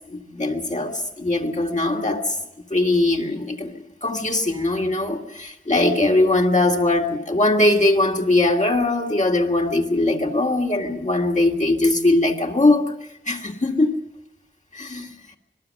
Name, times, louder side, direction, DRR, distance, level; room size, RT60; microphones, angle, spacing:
voice 1, 0.0-2.4 2.7-12.9 13.3-14.0 14.7-15.1, left 2 dB, 40° left, 0 dB, 2.3 m, -21 dB
26.0 x 20.5 x 6.6 m, 0.87 s
wide cardioid pair, 70°, 19 cm